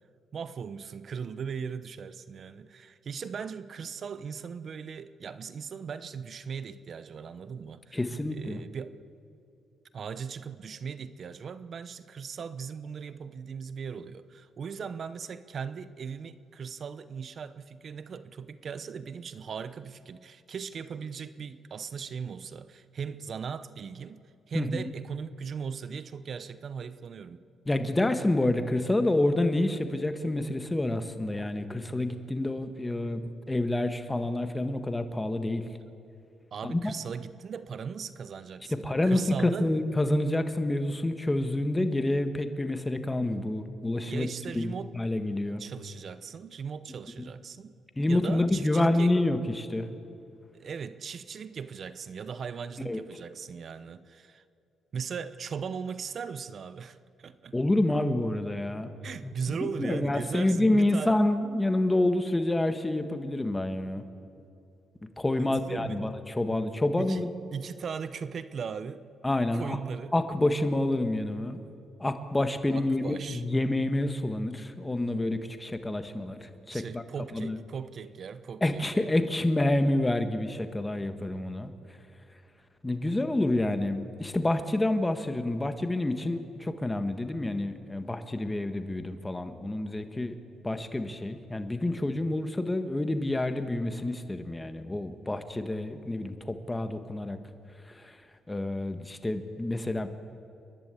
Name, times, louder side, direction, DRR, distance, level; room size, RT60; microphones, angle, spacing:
voice 1, 0.3-8.0 8.3-9.0 9.9-24.2 24.5-27.4 36.5-39.7 44.1-44.9 45.6-47.7 48.1-49.2 50.5-54.4 54.9-57.6 59.0-61.1 65.4-66.0 67.0-67.2 67.5-69.1 69.5-70.1 72.7-73.4 76.7-79.1, right 6 dB, 50° right, 0.8 m, -38 dB
voice 2, 7.9-8.6 24.5-24.9 27.7-33.2 33.5-35.6 36.6-36.9 38.7-44.3 44.5-45.6 48.0-49.9 52.8-53.0 57.5-58.9 59.2-64.0 65.2-67.3 69.2-69.8 70.1-71.6 72.0-77.0 77.3-77.6 78.6-81.7 82.8-90.3 90.6-97.4 98.0-98.2 98.5-100.1, left 1 dB, 15° left, 1.5 m, -28 dB
29.0 x 11.0 x 8.3 m
cardioid pair, 90°, 0 cm